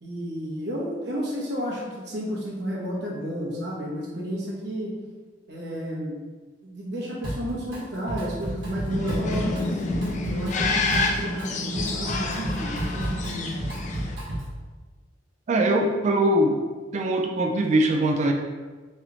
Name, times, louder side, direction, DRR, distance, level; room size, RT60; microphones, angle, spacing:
voice 1, 0.0-4.9 5.5-6.2 6.6-9.8 10.3-13.6, equal, 65° right, -4 dB, 1.0 m, -32 dB
Drum kit, 7.2-7.8 8.1-14.6, right 1 dB, 85° right, 1.3 m, -32 dB
sound 1, 8.9-14.1, left 3 dB, 40° left, 0.4 m, -28 dB
voice 2, 15.5-16.6 16.9-18.3, right 1 dB, 40° right, 3 dB, 0.3 m, -22 dB
3.2 x 3.0 x 3.9 m, 1.4 s
head